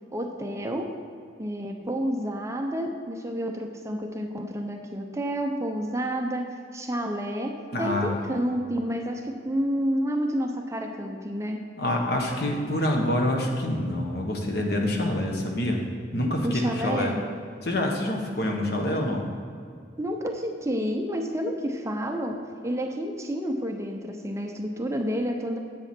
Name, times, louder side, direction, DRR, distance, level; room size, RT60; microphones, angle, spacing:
voice 1, 0.1-0.9 1.4-7.5 7.8-11.6 16.4-17.2 20.0-25.6, equal, 15° right, 2 dB, 0.7 m, -29 dB
voice 2, 7.7-8.2 11.8-15.8 16.1-17.1 17.6-19.3, left 1 dB, 60° left, 1 dB, 1.3 m, -26 dB
9.6 x 8.3 x 4.4 m, 2.3 s
head